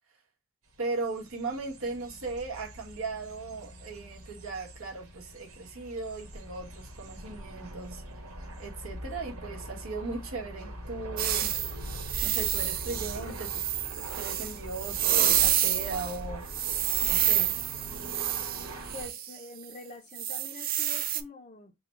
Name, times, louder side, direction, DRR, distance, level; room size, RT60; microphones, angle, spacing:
sound 1, 0.7-19.1, right 1 dB, 85° right, 1.4 m, -42 dB
voice 1, 0.8-8.0 8.6-11.5 12.2-13.6 14.1-16.4 17.0-17.5, right 3 dB, 70° right, 1.5 m, -37 dB
sound 2, 11.2-16.2 16.5-19.3 20.2-21.2, right 11 dB, 40° right, 0.4 m, -28 dB
voice 2, 18.9-21.7, left 2 dB, 30° left, 0.6 m, -45 dB
3.9 x 2.3 x 4.3 m
head